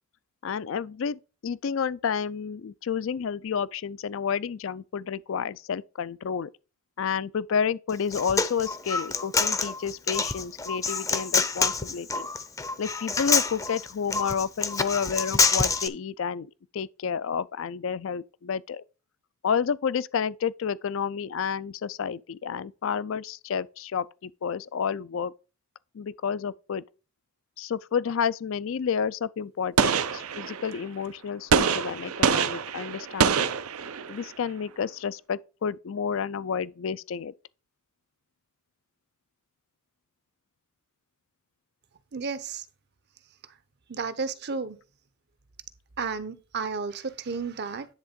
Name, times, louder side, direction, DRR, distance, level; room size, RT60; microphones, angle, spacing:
voice 1, 0.4-6.5 7.0-12.3 12.8-18.8 19.4-25.3 25.9-26.8 27.6-33.5 34.1-37.3, left 6 dB, 65° left, 0.4 m, -30 dB
Human voice, 7.9-15.9, left 4 dB, 15° left, 0.6 m, -26 dB
Gunshot gunfire, 29.8-30.8 31.5-34.3, right 6 dB, 90° right, 0.6 m, -25 dB
voice 2, 42.1-42.6 43.9-44.8 46.0-47.9, right 5 dB, 50° right, 0.7 m, -32 dB
10.5 x 3.5 x 5.1 m
head